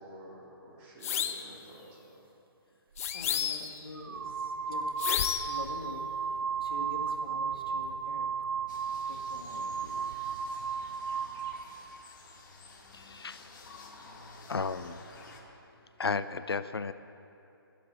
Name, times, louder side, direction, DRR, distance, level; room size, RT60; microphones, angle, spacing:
voice 1, 0.0-2.1, equal, 30° right, -5 dB, 3.5 m, -50 dB
sound 1, 1.0-1.5 3.0-3.8 5.0-5.6, left 9 dB, 40° left, 0.7 m, -31 dB
sound 2, 3.0-3.1 3.9-11.7, right 6 dB, 70° right, 0.7 m, -34 dB
voice 2, 3.1-4.9 5.4-6.1 6.6-8.3 9.1-10.1, left 2 dB, 70° left, 2 dB, 1.9 m, -45 dB
sound 3, 8.7-15.4, left 3 dB, 55° left, 1.9 m, -52 dB
voice 3, 12.9-13.6 14.5-15.0 16.0-16.9, left 4 dB, 85° left, 13 dB, 0.5 m, -33 dB
12.5 x 8.4 x 8.8 m, 2.8 s
figure-of-eight pair, 145°, 13 cm